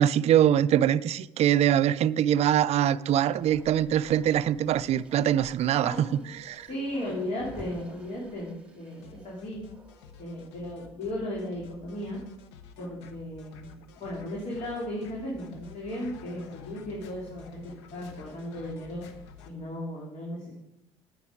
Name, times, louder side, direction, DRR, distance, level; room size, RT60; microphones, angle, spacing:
voice 1, 0.0-6.1 6.4-6.7, right 10 dB, 50° right, 0.4 m, -23 dB
Bark, 2.7-10.3 10.6-10.7, right 2 dB, 10° right, 2.2 m, -52 dB
voice 2, 5.8-6.3 6.7-9.6 10.2-12.2 12.8-19.1 19.4-20.5, left 1 dB, 55° left, 3.2 m, -36 dB
sound 1, 9.0-19.5, left 6 dB, 85° left, 0.9 m, -50 dB
9.4 x 9.0 x 4.8 m
hypercardioid pair, 65°, 14 cm